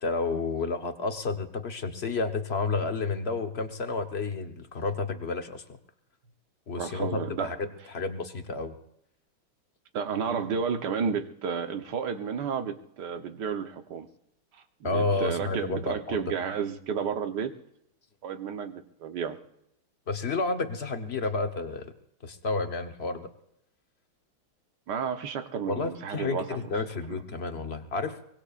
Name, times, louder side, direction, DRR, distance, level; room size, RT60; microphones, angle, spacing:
voice 1, 0.0-5.6 6.7-8.7 14.8-16.3 20.1-21.9 22.2-23.3 25.7-28.2, left 3 dB, 40° left, 6 dB, 1.1 m, -31 dB
voice 2, 6.7-7.5 9.9-14.1 14.8-17.5 18.2-19.4 24.9-26.7 27.1-27.2, right 6 dB, 60° right, 7 dB, 1.5 m, -32 dB
24.0 x 20.5 x 2.5 m, 0.77 s
omnidirectional pair, 2.3 m